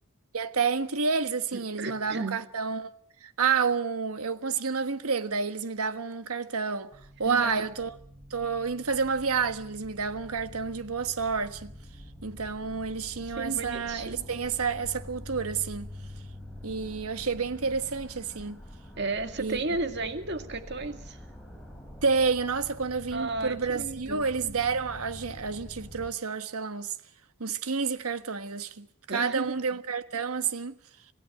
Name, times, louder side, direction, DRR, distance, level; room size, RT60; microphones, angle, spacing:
voice 1, 0.3-2.9 3.2-8.0 8.3-11.7 12.2-15.9 16.6-18.6 19.4-19.6 22.0-27.0 27.4-28.9 29.1-30.8, right 5 dB, 85° right, 1.4 m, -29 dB
voice 2, 1.8-2.4 7.2-7.7 13.4-14.3 19.0-21.2 23.1-24.3 29.1-29.6, right 3 dB, 50° right, 2.1 m, -33 dB
sound 1, 6.9-26.1, left 1 dB, 5° left, 4.2 m, -46 dB
27.0 x 16.5 x 7.7 m
head